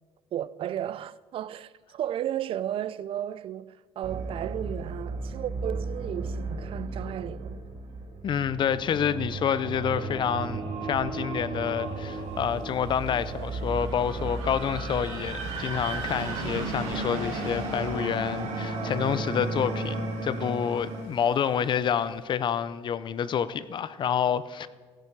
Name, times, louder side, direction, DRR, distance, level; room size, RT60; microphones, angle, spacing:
voice 1, 0.3-7.6, right 11 dB, 50° right, 0.4 m, -34 dB
sound 1, 4.0-21.0, right 3 dB, 70° right, 2.6 m, -35 dB
voice 2, 8.2-24.7, left 8 dB, 40° left, 0.6 m, -28 dB
sound 2, 12.1-21.9, right 3 dB, 85° right, 3.5 m, -38 dB
15.5 x 11.5 x 4.7 m
cardioid pair, 130°, 12 cm